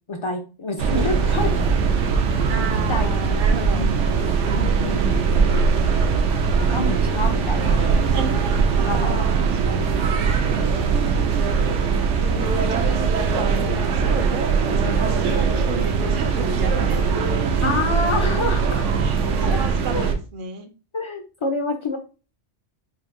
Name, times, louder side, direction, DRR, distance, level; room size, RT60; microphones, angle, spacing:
voice 1, 0.1-1.6 2.9-3.1 3.7-3.9 4.4-5.1 6.6-8.0 8.9-9.3 12.3-12.5 13.0-13.1 17.6-18.8 19.4-19.6 19.9-20.1 20.9-22.0, left 2 dB, 55° left, 0.3 m, -27 dB
sound 1, 0.8-20.1, right 5 dB, 80° right, 1.0 m, -21 dB
voice 2, 2.5-3.8 8.0-9.9 12.3-17.8 19.0-20.7, right 4 dB, 60° right, 0.6 m, -33 dB
5.5 x 2.6 x 2.5 m
omnidirectional pair, 1.2 m